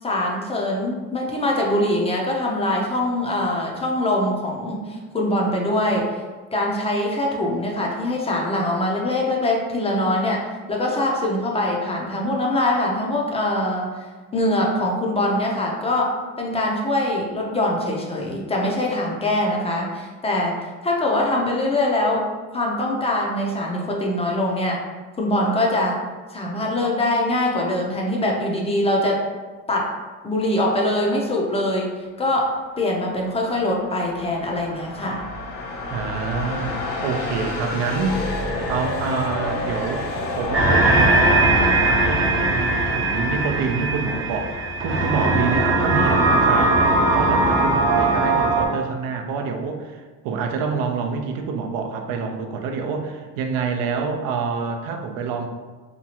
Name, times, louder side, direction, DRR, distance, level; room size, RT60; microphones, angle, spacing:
voice 1, 0.0-6.1 6.5-10.4 10.7-13.9 14.3-20.6 20.8-22.3 22.5-24.8 25.2-26.0 26.3-29.2 29.7-29.9 30.2-31.9 32.2-35.3, left 1 dB, 20° left, -2 dB, 0.4 m, -23 dB
sound 1, 33.1-41.1, left 2 dB, 70° left, 0.6 m, -29 dB
voice 2, 35.9-38.4 38.7-40.1 40.3-44.5 44.8-55.5, right 5 dB, 85° right, 3 dB, 0.5 m, -27 dB
sound 2, 40.5-48.7, right 2 dB, 40° right, 0.5 m, -19 dB
2.9 x 2.3 x 2.8 m, 1.4 s
cardioid pair, 120°, 34 cm